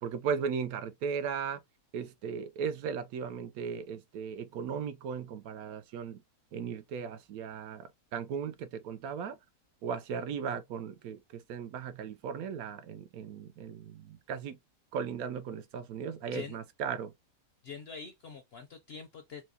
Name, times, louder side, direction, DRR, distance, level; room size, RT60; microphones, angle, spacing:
voice 1, 0.0-1.6 1.9-6.2 6.5-9.4 9.8-14.6 14.9-17.1, right 6 dB, 75° right, 1.0 m, -37 dB
voice 2, 17.6-19.5, left 6 dB, 60° left, 0.7 m, -45 dB
4.6 x 2.2 x 2.8 m
omnidirectional pair, 1.6 m